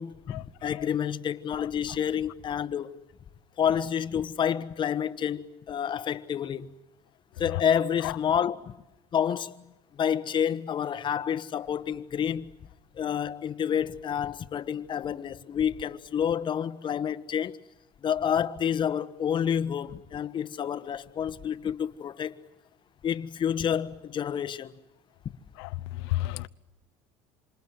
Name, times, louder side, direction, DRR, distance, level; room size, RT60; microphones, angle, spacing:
voice 1, 0.0-3.0 3.6-6.7 7.4-8.7 9.1-9.6 9.9-12.5 13.0-17.6 18.0-22.4 23.0-24.7, left 8 dB, 35° left, 1.4 m, -29 dB
voice 2, 25.6-26.5, left 17 dB, 85° left, 0.9 m, -32 dB
27.5 x 27.0 x 7.7 m
supercardioid pair, 110°, 13 cm